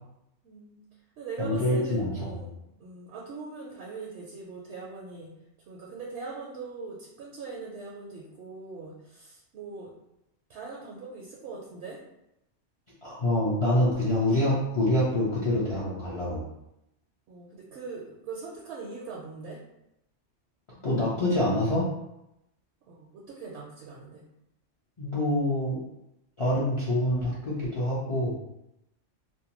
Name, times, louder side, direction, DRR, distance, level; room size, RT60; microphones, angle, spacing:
voice 1, 0.4-0.8 1.2-2.5 2.8-5.3 5.7-9.9 10.5-12.0 17.3-19.6 22.9-24.2, right 4 dB, 70° right, -4 dB, 0.8 m, -41 dB
voice 2, 1.4-2.4 13.0-16.5 20.8-21.8 25.0-25.8 26.4-28.3, left 1 dB, 35° left, -8 dB, 0.5 m, -26 dB
2.6 x 2.1 x 2.9 m, 0.87 s
omnidirectional pair, 1.2 m